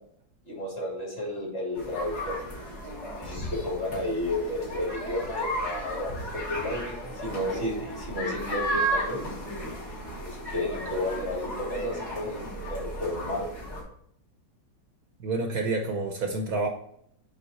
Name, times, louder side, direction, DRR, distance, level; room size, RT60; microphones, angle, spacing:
voice 1, 0.5-2.4 3.1-9.2 10.2-13.5, left 1 dB, 35° left, -3 dB, 2.9 m, -32 dB
sound 1, 1.7-13.8, right 1 dB, 60° left, 3.5 m, -34 dB
voice 2, 15.2-16.7, right 3 dB, 60° right, 4 dB, 1.3 m, -28 dB
8.7 x 4.0 x 4.2 m, 0.68 s
omnidirectional pair, 1.9 m